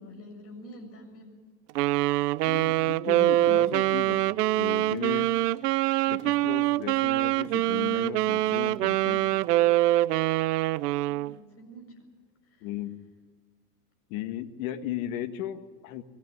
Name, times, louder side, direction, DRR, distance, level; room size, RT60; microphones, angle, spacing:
voice 1, 0.0-1.4 1.9-2.4 11.1-12.1 12.4-12.7, equal, 30° left, 3 dB, 7.2 m, -48 dB
Wind instrument woodwind instrument, 1.8-11.3, right 16 dB, 75° right, 0.8 m, -24 dB
voice 2, 2.4-4.3 4.6-5.3 6.1-9.4 12.6-13.0 14.1-16.0, left 12 dB, 60° left, 8 dB, 2.1 m, -36 dB
23.5 x 18.5 x 9.6 m, 1.5 s
supercardioid pair, 120°, 48 cm